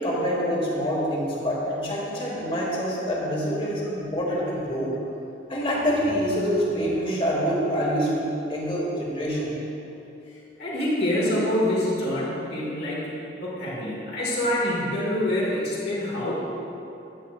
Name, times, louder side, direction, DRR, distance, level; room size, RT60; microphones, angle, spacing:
voice 1, 0.0-4.9 5.5-9.5, equal, 30° left, -4 dB, 1.6 m, -26 dB
voice 2, 10.6-13.1 13.4-16.3, left 1 dB, 65° left, -7 dB, 1.8 m, -26 dB
10.0 x 8.1 x 2.4 m, 2.9 s
head